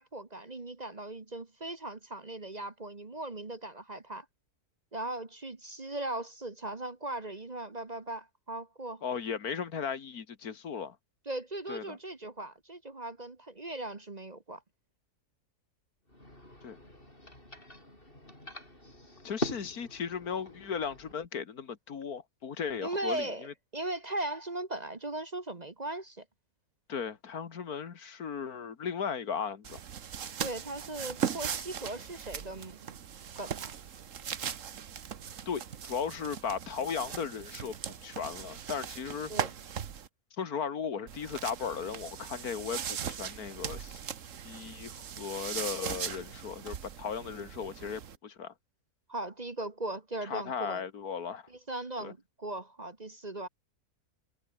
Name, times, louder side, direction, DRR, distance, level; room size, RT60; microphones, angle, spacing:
voice 1, 0.0-4.2 4.9-9.0 11.3-14.6 22.8-23.5 23.7-26.2 30.4-32.8 33.3-33.7 39.3-39.5 49.1-50.8 51.5-53.5, right 2 dB, 30° right, 1.4 m, -38 dB
voice 2, 9.0-11.0 11.7-12.0 16.6-16.8 19.2-23.5 26.9-29.8 35.5-39.3 40.4-44.0 44.4-48.5 50.2-51.5 52.0-52.1, left 6 dB, 70° left, 2.1 m, -36 dB
sound 1, 16.1-21.1, left 1 dB, 35° left, 8.2 m, -42 dB
sound 2, 29.6-40.1 41.1-48.2, right 8 dB, 60° right, 1.4 m, -39 dB
omnidirectional pair, 1.6 m